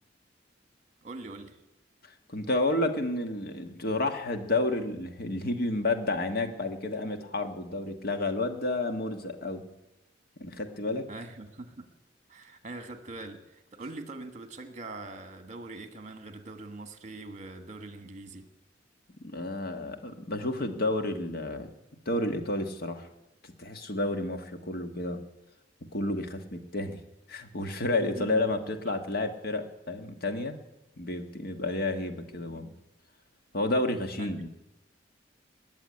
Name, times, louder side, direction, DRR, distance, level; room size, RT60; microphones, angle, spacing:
voice 1, 1.0-1.6 11.1-11.9 12.3-18.5 28.1-28.5 34.2-34.3, right 2 dB, 40° right, 9 dB, 1.3 m, -42 dB
voice 2, 2.3-9.6 10.4-11.1 19.2-21.7 22.0-23.1 23.6-25.2 25.9-27.0 27.3-30.6 31.0-32.7 33.5-34.5, left 2 dB, 55° left, 6 dB, 1.5 m, -30 dB
20.0 x 7.2 x 9.6 m, 0.95 s
head